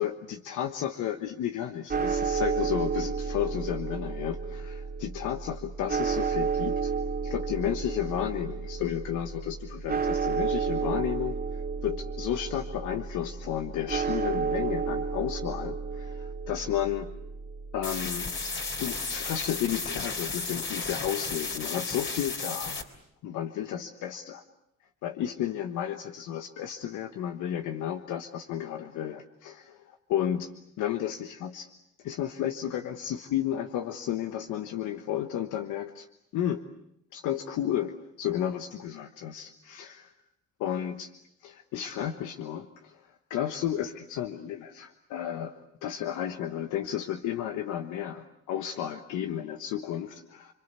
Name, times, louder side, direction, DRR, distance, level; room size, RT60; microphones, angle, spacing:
voice 1, 0.0-6.9 7.2-17.1 17.7-18.3 18.8-22.8 23.2-24.4 25.0-30.5 30.8-31.7 32.0-36.1 36.3-36.6 37.1-40.1 40.6-41.1 41.4-50.5, left 10 dB, 90° left, 7 dB, 1.3 m, -32 dB
sound 1, 1.9-20.1, right 5 dB, 30° right, 2.1 m, -32 dB
sound 2, 17.8-22.8, left 4 dB, 40° left, 3.6 m, -34 dB
30.0 x 23.5 x 8.3 m, 0.77 s
cardioid pair, 90°, 30 cm